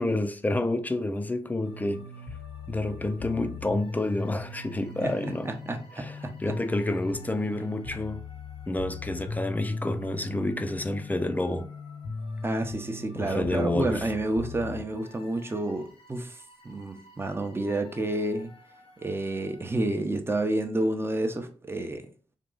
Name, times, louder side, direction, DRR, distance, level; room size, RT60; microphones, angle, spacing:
voice 1, 0.0-2.1 2.7-5.5 5.9-8.3 8.7-11.7 13.1-13.9, left 2 dB, 15° left, 0.5 m, -29 dB
sound 1, 1.6-19.8, left 3 dB, 80° left, 0.9 m, -39 dB
voice 2, 5.4-6.5 12.4-16.4 16.6-18.5 19.0-22.1, right 1 dB, 25° right, 0.7 m, -30 dB
3.6 x 2.3 x 3.7 m
cardioid pair, 55°, 10 cm